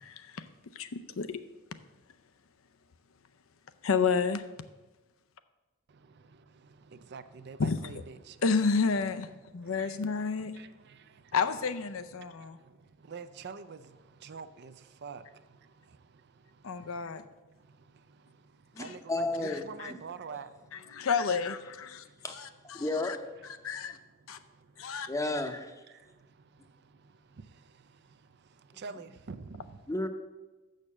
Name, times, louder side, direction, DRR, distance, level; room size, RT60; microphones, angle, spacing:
voice 1, 0.0-0.5 0.7-1.4 3.8-4.4 7.6-7.8 8.4-9.3 9.5-10.5 11.3-12.6 16.6-17.2 18.8-19.0 19.5-19.9 20.7-22.1 22.3-23.2 23.6-24.0 24.3-24.4 24.8-25.1, left 5 dB, 75° left, 0.6 m, -30 dB
voice 2, 7.1-8.3 9.8-10.0 10.6-10.7 13.1-13.8 14.2-14.7 15.0-15.2 18.8-20.5 28.8-29.6, right 5 dB, 55° right, 0.5 m, -44 dB
voice 3, 18.7-19.6 19.9-20.0 22.2-22.4 22.7-23.2 25.1-25.8 29.9-30.1, left 2 dB, 15° left, 0.7 m, -32 dB
6.5 x 6.5 x 7.3 m
head